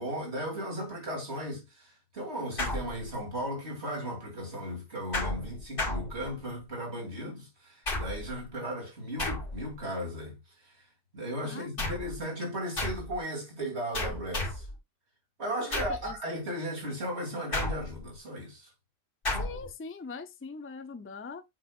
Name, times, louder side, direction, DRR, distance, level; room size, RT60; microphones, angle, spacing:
voice 1, 0.0-10.3 10.6-10.8 11.1-14.7 15.4-18.7, equal, 65° right, 3.2 m, -36 dB
sound 1, 2.6-3.4 5.1-6.7 7.9-8.4 9.2-9.8 11.8-12.2 12.8-13.2 13.9-14.8 15.7-16.1 17.5-18.2 19.3-19.7, left 2 dB, 50° left, 2.2 m, -33 dB
voice 2, 11.4-11.9 15.7-16.2 19.4-21.4, left 4 dB, 15° left, 0.5 m, -42 dB
7.3 x 5.5 x 2.4 m
omnidirectional pair, 1.2 m